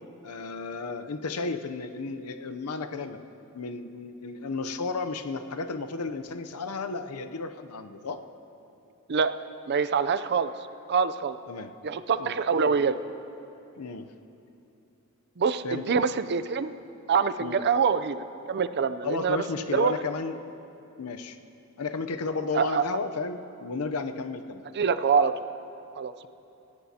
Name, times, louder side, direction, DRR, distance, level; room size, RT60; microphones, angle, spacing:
voice 1, 0.2-3.2 3.5-8.2 11.5-11.7 12.2-12.4 12.6-12.8 13.7-14.1 15.6-16.0 17.4-17.6 19.0-20.4 21.0-21.4 21.8-24.6, left 4 dB, 85° left, 8 dB, 0.7 m, -33 dB
voice 2, 9.7-10.5 10.9-11.4 11.8-13.0 15.4-16.7 17.1-19.9 22.5-23.0 24.7-25.3 26.0-26.3, right 6 dB, 50° right, 12 dB, 0.5 m, -25 dB
28.0 x 16.0 x 2.8 m, 2.8 s
head